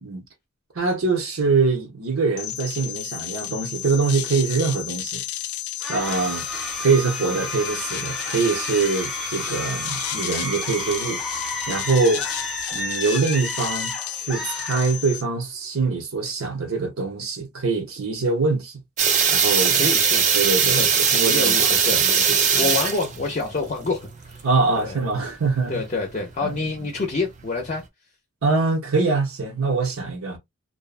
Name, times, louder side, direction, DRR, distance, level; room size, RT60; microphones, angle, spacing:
voice 1, 0.7-5.2 5.9-11.2 11.7-12.3 12.7-18.7 19.3-19.9 20.3-22.8 24.4-25.8 26.4-26.7 28.4-30.4, right 4 dB, 80° right, 0.9 m, -24 dB
sound 1, 2.4-15.2, left 13 dB, 85° left, 0.4 m, -32 dB
sound 2, 5.8-15.4, equal, ahead, 0.7 m, -32 dB
sound 3, 19.0-27.8, right 6 dB, 35° right, 0.5 m, -21 dB
voice 2, 19.7-20.3 20.8-20.9 21.2-22.0 22.6-24.0 24.3-24.4 24.8-25.0 25.7-27.8, left 3 dB, 35° left, 0.5 m, -27 dB
2.6 x 2.2 x 2.4 m
head